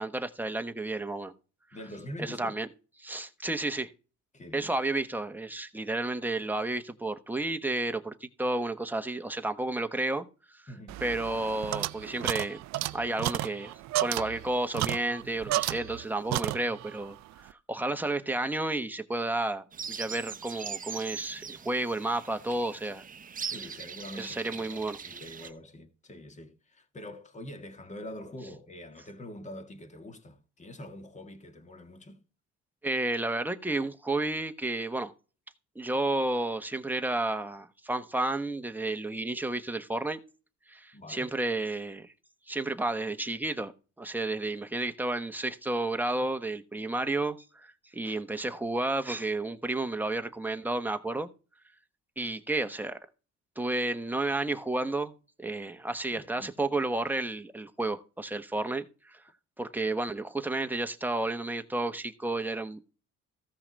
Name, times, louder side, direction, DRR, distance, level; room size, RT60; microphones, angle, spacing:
voice 1, 0.0-1.3 2.2-2.7 3.0-3.9 4.5-10.3 10.5-10.6 11.0-12.6 12.9-13.7 14.0-17.2 17.4-23.0 24.1-25.0 32.8-35.1 35.7-40.2 40.7-42.1 42.5-43.7 44.0-51.3 52.2-53.0 53.6-55.1 55.4-59.2 59.6-62.8, right 2 dB, 5° right, 1.1 m, -31 dB
voice 2, 1.7-2.6 4.3-4.7 10.7-11.0 23.4-32.2 40.9-41.3 56.1-56.5, left 1 dB, 25° left, 1.9 m, -45 dB
sound 1, 10.9-16.0 16.3-17.0, right 16 dB, 65° right, 0.5 m, -32 dB
sound 2, 19.7-25.5, right 6 dB, 25° right, 0.9 m, -41 dB
15.0 x 5.7 x 4.1 m
cardioid pair, 105°, 30 cm